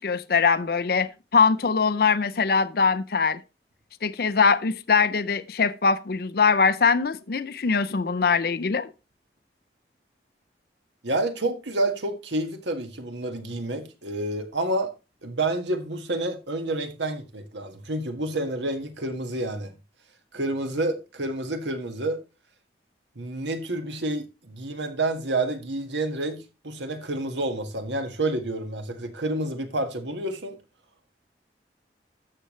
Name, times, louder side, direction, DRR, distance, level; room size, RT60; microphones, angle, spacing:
voice 1, 0.0-3.4 4.0-8.9, left 5 dB, 55° left, 0.5 m, -22 dB
voice 2, 11.0-14.9 15.2-19.7 20.3-22.2 23.2-30.6, right 2 dB, 80° right, 1.8 m, -29 dB
13.0 x 6.8 x 3.2 m
head